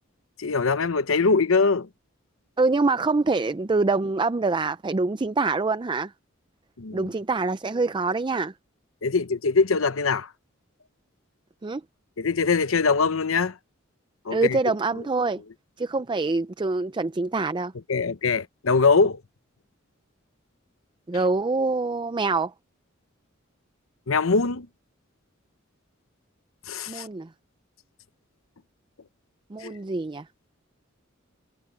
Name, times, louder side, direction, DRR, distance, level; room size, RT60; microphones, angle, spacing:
voice 1, 0.4-1.9 6.8-7.1 9.0-10.3 12.2-13.6 14.2-14.6 17.9-19.2 24.1-24.7 26.7-27.1 29.6-29.7, left 4 dB, 90° left, 0.9 m, -22 dB
voice 2, 2.6-6.1 6.9-8.5 11.6-11.8 14.3-15.4 15.8-17.7 21.1-22.5 26.9-27.3 29.5-30.2, right 3 dB, 25° right, 0.4 m, -25 dB
head